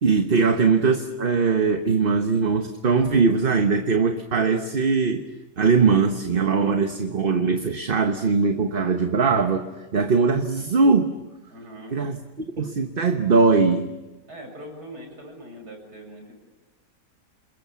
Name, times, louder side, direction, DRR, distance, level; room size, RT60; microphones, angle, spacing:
voice 1, 0.0-5.2 5.6-9.7 9.9-11.1 11.9-12.2 12.6-13.9, right 4 dB, 40° right, 6 dB, 1.2 m, -20 dB
voice 2, 11.5-12.0 14.3-16.3, right 1 dB, 80° right, 2 dB, 7.6 m, -41 dB
29.0 x 21.5 x 7.2 m, 1.1 s
omnidirectional pair, 1.7 m